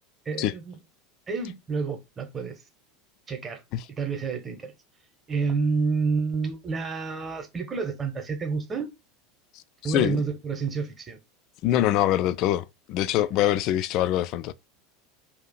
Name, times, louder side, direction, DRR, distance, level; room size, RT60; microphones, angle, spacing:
voice 1, 0.3-0.8 1.3-2.5 3.3-3.6 4.0-4.7 5.3-8.9 9.8-11.2, right 4 dB, 25° right, 0.9 m, -29 dB
voice 2, 9.8-10.2 11.6-14.5, left 13 dB, 45° left, 0.3 m, -24 dB
2.8 x 2.4 x 4.1 m
figure-of-eight pair, 80°, 0 cm